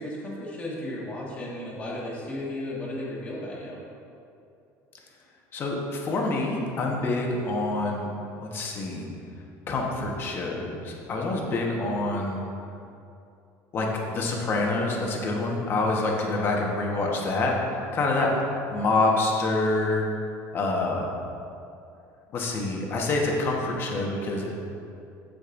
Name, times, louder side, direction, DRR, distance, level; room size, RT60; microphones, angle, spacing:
voice 1, 0.0-3.8, left 1 dB, 20° left, -6 dB, 1.6 m, -34 dB
voice 2, 5.5-8.1 8.4-9.1 9.7-12.4 13.7-17.6 17.9-18.3 18.7-20.1 20.5-21.1 22.3-24.5, left 2 dB, 35° left, -1 dB, 1.2 m, -26 dB
15.0 x 5.2 x 2.6 m, 2.6 s
cardioid pair, 160°, 7 cm